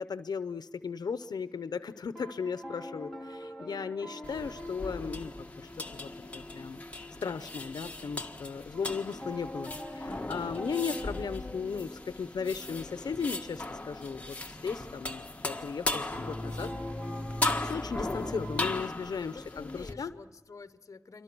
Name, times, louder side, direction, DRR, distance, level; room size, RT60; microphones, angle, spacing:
voice 1, 0.0-5.7 6.0-6.8 7.2-16.7 17.6-20.1, left 5 dB, 85° left, 12 dB, 0.8 m, -36 dB
sound 1, 1.1-1.7 2.1-8.4 8.7-15.3 16.1-18.6, left 1 dB, ahead, 2.4 m, -43 dB
sound 2, 4.2-19.9, left 2 dB, 20° left, 1.6 m, -38 dB
voice 2, 19.2-21.2, left 4 dB, 50° left, 12 dB, 1.1 m, -48 dB
27.5 x 24.5 x 6.2 m, 1.2 s
wide cardioid pair, 110°, 7 cm